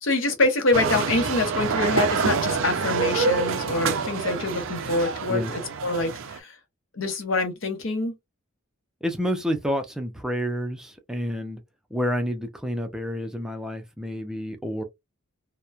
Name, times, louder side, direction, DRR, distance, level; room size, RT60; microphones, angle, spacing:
voice 1, 0.0-6.5 6.9-8.1, left 2 dB, 65° left, 0.8 m, -25 dB
sound 1, 0.7-6.4, right 5 dB, 65° right, 0.4 m, -26 dB
voice 2, 9.0-11.6 11.9-14.8, equal, 5° right, 0.4 m, -29 dB
2.9 x 2.1 x 2.3 m
head